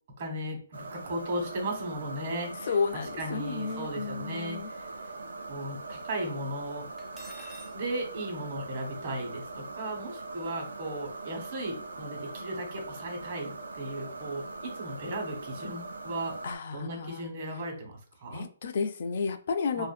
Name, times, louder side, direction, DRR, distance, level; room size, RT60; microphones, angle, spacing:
voice 1, 0.2-4.9 5.5-6.9 7.7-16.3 16.7-18.5 19.7-19.9, right 1 dB, 50° right, 1.1 m, -36 dB
sound 1, 0.7-16.6, right 3 dB, 85° right, 0.4 m, -41 dB
voice 2, 2.6-4.7 16.4-17.3 18.3-19.9, left 5 dB, 55° left, 0.3 m, -32 dB
Cutlery silverware, 7.0-7.8, right 2 dB, 10° right, 0.5 m, -47 dB
2.5 x 2.5 x 2.4 m
hypercardioid pair, 160°, 0 cm